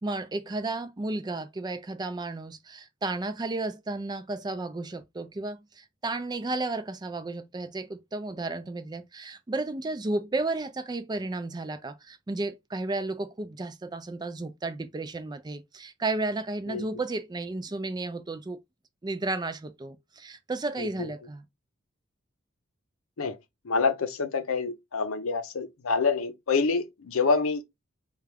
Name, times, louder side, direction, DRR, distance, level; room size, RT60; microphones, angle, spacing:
voice 1, 0.0-18.6 19.0-21.4, right 2 dB, 20° right, 0.4 m, -33 dB
voice 2, 20.8-21.1 23.2-23.4 23.6-27.6, left 4 dB, 80° left, 0.7 m, -27 dB
4.5 x 2.3 x 3.4 m
head